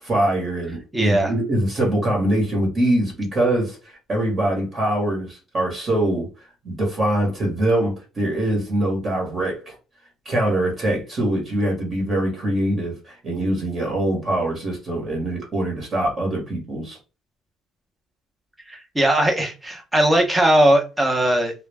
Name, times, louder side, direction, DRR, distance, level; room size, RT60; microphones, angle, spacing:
voice 1, 0.0-6.3 6.6-9.7 10.2-17.0, right 1 dB, 30° right, 1.0 m, -23 dB
voice 2, 0.9-1.3 18.7-21.5, right 1 dB, 5° right, 0.6 m, -19 dB
2.2 x 2.0 x 3.3 m
cardioid pair, 160°, 0 cm